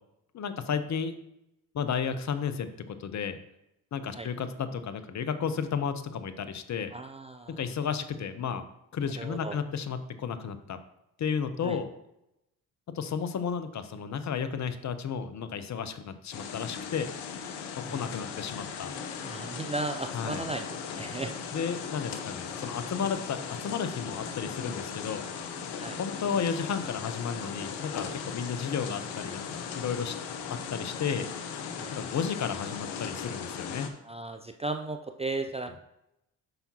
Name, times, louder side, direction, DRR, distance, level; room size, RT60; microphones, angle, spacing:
voice 1, 0.3-1.2 1.7-3.4 3.9-6.9 7.6-8.6 8.9-10.8 11.2-11.9 12.9-17.1 17.8-18.9 20.1-20.4 21.5-25.2 26.0-30.2 30.5-31.3 31.9-33.9, left 6 dB, 40° left, 11 dB, 0.7 m, -33 dB
voice 2, 6.9-7.7 9.2-9.6 11.6-11.8 17.8-18.1 19.2-21.4 25.8-26.0 31.7-31.9 34.0-35.8, right 3 dB, 15° right, 6 dB, 0.4 m, -36 dB
sound 1, 16.3-33.9, left 6 dB, 70° left, 0.9 m, -38 dB
7.8 x 5.7 x 2.9 m, 0.85 s
hypercardioid pair, 50°, 42 cm